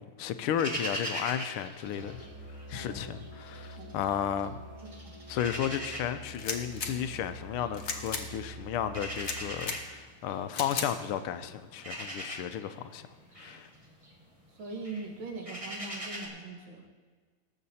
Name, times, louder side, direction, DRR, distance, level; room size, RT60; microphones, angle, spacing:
voice 1, 0.0-2.3 2.7-4.5 5.3-13.0 13.4-13.7, left 9 dB, 80° left, 10 dB, 1.5 m, -33 dB
sound 1, 0.6-2.8 3.2-4.5 4.8-16.3, equal, 20° right, 1.2 m, -41 dB
Musical instrument, 1.9-9.7, equal, 90° right, 2.4 m, -47 dB
voice 2, 4.8-5.1 14.5-16.9, right 3 dB, 65° right, 3 dB, 2.1 m, -42 dB
sound 2, 6.3-6.9 7.7-8.2 9.2-9.8 10.5-10.9, left 5 dB, 45° left, 0.9 m, -35 dB
18.5 x 7.6 x 4.2 m, 1.5 s
omnidirectional pair, 2.4 m